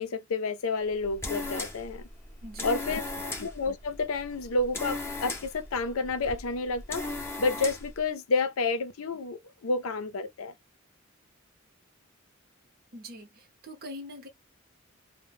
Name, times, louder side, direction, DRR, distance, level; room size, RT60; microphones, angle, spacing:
voice 1, 0.0-2.0 2.6-3.0 3.4-7.0 7.4-10.5, left 3 dB, 85° left, 0.5 m, -30 dB
sound 1, 0.8-8.0, left 2 dB, 10° left, 0.5 m, -38 dB
voice 2, 2.4-3.3 12.9-14.3, equal, 50° right, 0.7 m, -44 dB
2.1 x 2.1 x 3.3 m
head